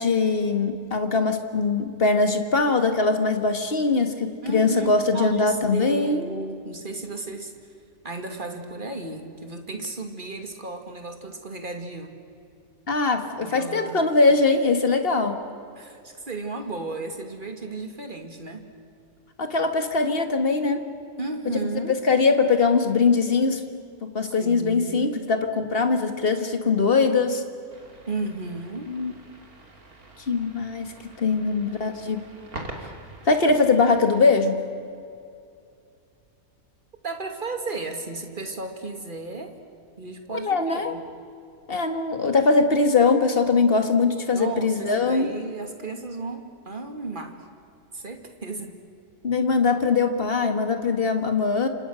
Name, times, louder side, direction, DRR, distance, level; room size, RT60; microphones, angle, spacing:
voice 1, 0.0-6.3 12.9-15.4 19.4-20.9 21.9-23.6 24.0-27.4 28.9-29.1 30.3-32.3 33.3-34.6 40.4-41.0 41.7-45.3 49.2-51.7, left 4 dB, 40° left, 6 dB, 2.0 m, -22 dB
voice 2, 4.4-7.5 8.0-12.2 13.4-14.0 14.3-14.4 15.8-18.6 21.2-22.0 24.2-25.3 28.1-28.9 31.3-31.6 37.0-39.5 40.0-41.0 44.3-47.4 47.9-48.7, right 3 dB, 35° right, 4 dB, 2.5 m, -34 dB
sound 1, 27.7-34.4, right 2 dB, 75° right, 3.3 m, -44 dB
29.5 x 26.5 x 6.4 m, 2.5 s
omnidirectional pair, 1.6 m